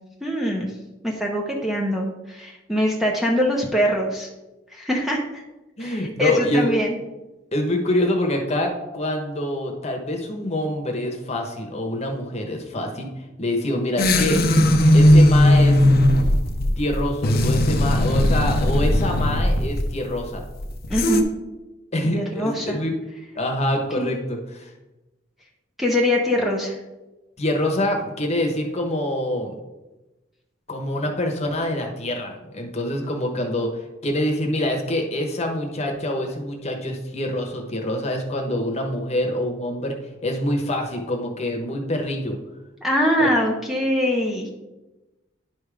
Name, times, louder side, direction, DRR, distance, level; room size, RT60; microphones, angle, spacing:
voice 1, 0.2-0.7 1.0-4.3 4.7-5.2 5.8-7.0 20.9-21.3 22.0-22.8 24.0-24.1 25.8-26.8 42.8-44.5, left 1 dB, ahead, -1 dB, 0.8 m, -23 dB
voice 2, 5.8-6.7 7.5-13.1 13.4-14.4 14.9-15.8 16.8-20.4 21.9-23.0 23.4-24.7 27.4-29.5 30.7-42.4 43.2-43.3, left 1 dB, 35° left, 3 dB, 1.1 m, -25 dB
sound 1, 14.0-21.2, left 1 dB, 55° left, 0.7 m, -17 dB
10.5 x 3.5 x 4.9 m, 1.0 s
head